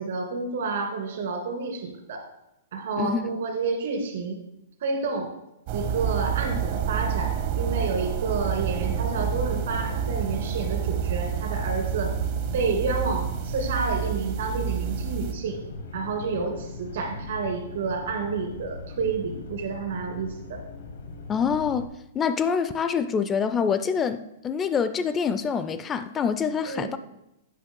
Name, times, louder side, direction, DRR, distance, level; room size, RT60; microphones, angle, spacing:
voice 1, 0.0-2.2 2.7-4.4 4.8-5.3 5.7-12.1 12.5-15.6 15.9-20.6 26.6-26.9, right 4 dB, 75° right, 2.2 m, -29 dB
sound 1, 5.7-15.3, right 9 dB, 50° right, 0.8 m, -28 dB
sound 2, 8.5-21.9, left 3 dB, 85° left, 1.2 m, -39 dB
voice 2, 21.3-21.9 22.1-27.0, left 6 dB, 20° left, 0.3 m, -26 dB
8.4 x 5.7 x 3.7 m
hypercardioid pair, 135°, 0 cm